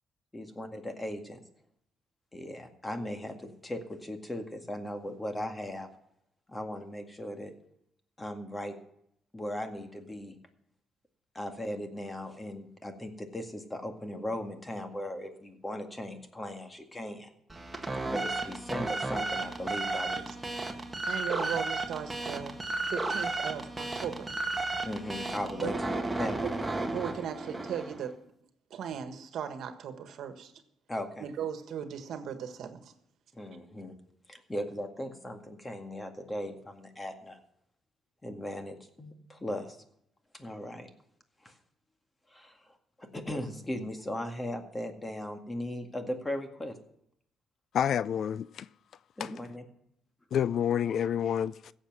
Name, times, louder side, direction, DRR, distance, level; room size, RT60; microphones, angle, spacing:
voice 1, 0.3-1.4 2.3-5.9 6.5-7.5 8.2-8.8 9.3-10.4 11.3-17.3 18.1-20.2 24.8-26.5 30.9-31.3 33.3-33.9 34.3-37.4 38.2-39.8 40.3-40.9 41.4-41.6 42.3-46.8 49.2-49.7, left 1 dB, 15° left, 2.0 m, -38 dB
sound 1, 17.5-28.1, right 2 dB, 15° right, 1.7 m, -34 dB
voice 2, 21.0-22.6 22.9-24.3 25.6-25.7 26.9-28.2 28.7-30.5 31.2-32.9, right 8 dB, 70° right, 1.5 m, -37 dB
voice 3, 47.7-48.7 49.2-49.3 50.3-51.7, left 9 dB, 65° left, 0.4 m, -28 dB
16.0 x 7.4 x 6.1 m
cardioid pair, 90°, 0 cm